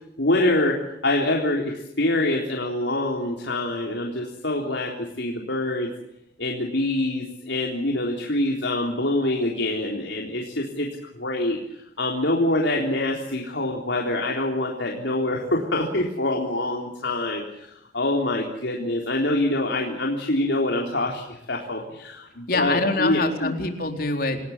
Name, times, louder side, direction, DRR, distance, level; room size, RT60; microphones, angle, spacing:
voice 1, 0.2-5.9 6.4-10.9 11.2-23.5, left 1 dB, 75° left, 0 dB, 3.8 m, -25 dB
voice 2, 22.5-24.4, left 3 dB, 55° left, 4 dB, 4.2 m, -25 dB
28.5 x 18.5 x 7.3 m, 0.82 s
head